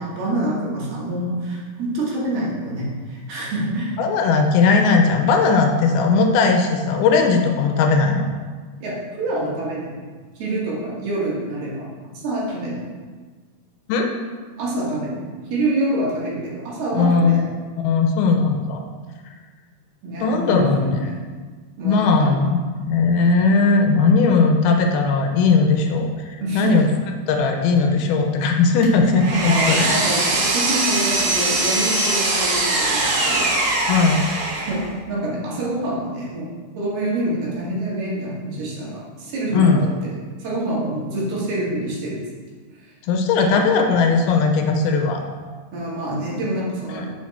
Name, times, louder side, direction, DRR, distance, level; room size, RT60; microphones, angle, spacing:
voice 1, 0.0-4.0 8.8-9.9 10.4-11.8 12.1-12.8 14.6-15.2 15.5-17.5 20.0-21.2 21.8-22.3 26.4-26.8 29.3-33.6 34.7-34.8 35.1-36.4 36.8-39.9 40.4-42.2 42.8-42.9 43.4-43.6 45.7-47.1, right 1 dB, 75° right, -6 dB, 4.1 m, -26 dB
voice 2, 4.0-8.3 13.9-14.1 16.9-17.4 17.8-18.8 20.2-21.1 21.8-26.9 27.3-29.9 33.9-34.2 39.5-39.8 43.0-45.2 46.9-47.1, left 4 dB, 80° left, 3 dB, 2.6 m, -18 dB
Power tool, 28.8-34.9, right 2 dB, 55° right, 2.0 m, -21 dB
7.7 x 7.4 x 4.3 m, 1.5 s
omnidirectional pair, 4.5 m